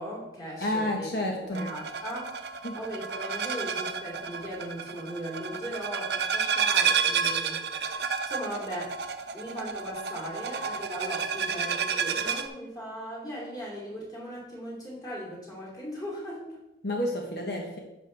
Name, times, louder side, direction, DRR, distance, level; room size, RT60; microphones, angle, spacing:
voice 1, 0.0-1.1 1.4-2.4 2.7-7.6 8.3-9.0 9.3-16.6, equal, 20° left, -5 dB, 2.9 m, -38 dB
voice 2, 0.6-1.7 2.6-2.8 16.8-17.8, left 1 dB, 60° left, 0 dB, 1.1 m, -30 dB
sound 1, 1.5-12.5, right 6 dB, 65° right, 0.6 m, -30 dB
10.0 x 6.4 x 3.4 m, 0.93 s
head